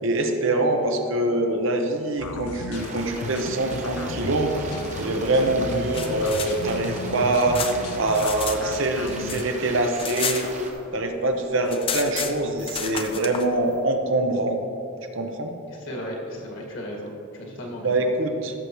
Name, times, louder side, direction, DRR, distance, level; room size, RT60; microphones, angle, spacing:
voice 1, 0.0-7.6 8.0-10.5 10.9-14.6 15.1-15.5 17.8-18.5, right 2 dB, 60° right, 4 dB, 0.9 m, -24 dB
sound 1, 2.2-9.4, left 3 dB, 85° left, 0.5 m, -35 dB
Stream, 2.7-10.7, right 2 dB, 35° right, 0.9 m, -38 dB
sound 2, 5.9-8.6 8.9-11.0 11.3-11.4 11.6-13.5, left 7 dB, 25° left, 0.4 m, -32 dB
voice 2, 15.7-18.1, equal, 60° left, -1 dB, 1.8 m, -35 dB
16.0 x 6.9 x 3.1 m, 3.0 s
head